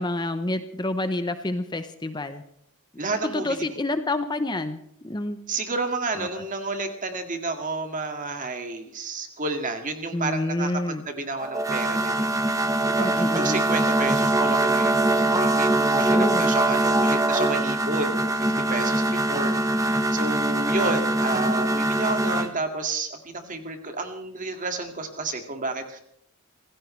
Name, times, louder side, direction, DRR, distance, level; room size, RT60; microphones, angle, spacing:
voice 1, 0.0-2.4 3.3-4.8 5.0-5.4 6.2-6.3 10.1-11.0 13.0-13.6 15.8-16.5, left 2 dB, 20° left, 9 dB, 0.8 m, -28 dB
voice 2, 3.0-3.7 5.5-12.3 12.8-26.0, right 3 dB, 35° right, 5 dB, 2.1 m, -31 dB
sound 1, 11.4-22.5, right 2 dB, 15° right, 1.2 m, -23 dB
26.5 x 16.5 x 3.3 m, 0.73 s
head